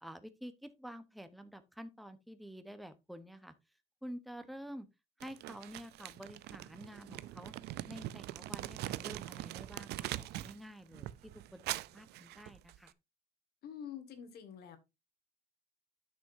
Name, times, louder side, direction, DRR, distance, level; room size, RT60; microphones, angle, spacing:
voice 1, 0.0-3.5 4.0-4.9 5.2-7.5 7.9-11.1 11.5-12.9, equal, ahead, 0.9 m, -49 dB
Crumpling crinkling, 5.2-10.6 10.9-12.9, right 15 dB, 80° right, 0.5 m, -43 dB
voice 2, 13.6-14.8, left 8 dB, 70° left, 1.8 m, -46 dB
11.0 x 6.3 x 2.6 m
cardioid pair, 110°, 17 cm